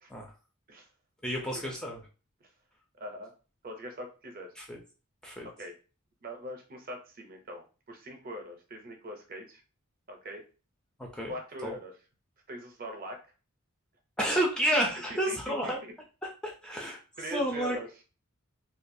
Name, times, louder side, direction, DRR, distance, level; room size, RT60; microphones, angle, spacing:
voice 1, 1.2-2.0 4.6-4.8 5.2-5.5 11.0-11.3 11.6-11.7 14.2-15.8 16.4-17.0 17.3-17.8, right 1 dB, 5° left, -1 dB, 0.4 m, -30 dB
voice 2, 3.0-3.3 3.6-4.5 5.6-5.7 6.2-9.6 10.1-10.4 11.3-11.9 12.5-13.2 15.1-15.9 16.7-16.8 17.2-17.9, equal, 40° right, 3 dB, 0.6 m, -42 dB
2.2 x 2.2 x 2.6 m, 0.34 s
head